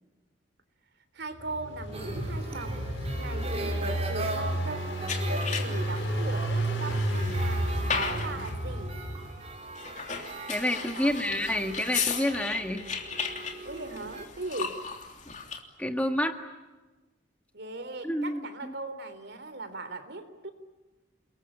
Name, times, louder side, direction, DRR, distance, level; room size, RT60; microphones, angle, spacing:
voice 1, 1.1-2.9 3.2-8.9 10.9-11.7 13.6-14.8 17.5-20.5, right 2 dB, 60° right, 10 dB, 3.3 m, -39 dB
Engine, 1.4-9.4, right 1 dB, 80° left, 4.7 m, -31 dB
sound 1, 1.9-14.3, right 3 dB, 35° right, 4.1 m, -40 dB
sound 2, 5.1-6.0 6.5-8.6 9.7-15.6, left 6 dB, 40° left, 3.2 m, -35 dB
voice 2, 10.5-12.8 15.8-16.4 18.0-18.4, left 1 dB, 5° left, 5 dB, 1.7 m, -28 dB
29.5 x 21.5 x 8.7 m, 1.2 s
head